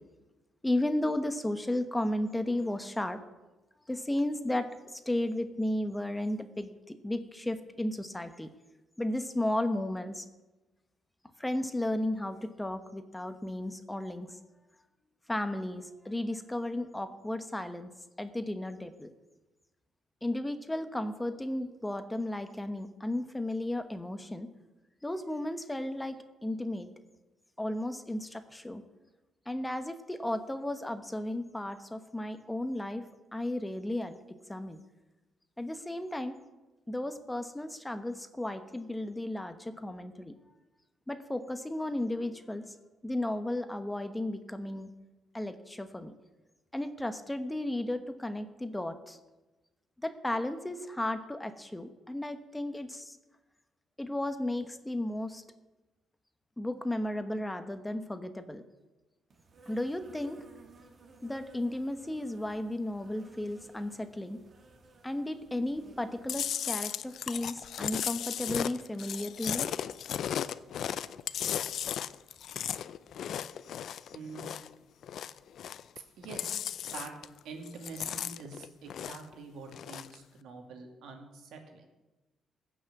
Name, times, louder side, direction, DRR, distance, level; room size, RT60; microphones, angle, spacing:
voice 1, 0.6-3.2 3.9-8.5 9.0-10.3 11.4-14.4 15.3-17.9 18.2-19.1 20.2-24.5 25.0-26.9 27.6-28.8 29.5-33.1 33.3-34.1 34.5-34.8 35.6-36.4 36.9-40.4 41.1-42.8 43.0-44.9 45.3-46.1 46.7-49.2 50.0-53.2 54.0-55.4 56.6-58.6 59.7-60.4 61.2-64.4 65.0-69.7, left 1 dB, 10° left, 9 dB, 1.0 m, -34 dB
Insect, 59.3-66.5, right 3 dB, 45° right, 2.1 m, -57 dB
Chewing mastication, 66.3-74.7 75.0-76.0 76.2-77.4 77.7-79.3 79.7-80.2, left 9 dB, 70° left, 0.5 m, -35 dB
voice 2, 74.1-74.5 76.2-76.6 76.9-77.1 77.4-81.8, right 4 dB, 80° right, 3 dB, 2.5 m, -45 dB
15.5 x 6.3 x 8.3 m, 1.1 s
cardioid pair, 90°, 0 cm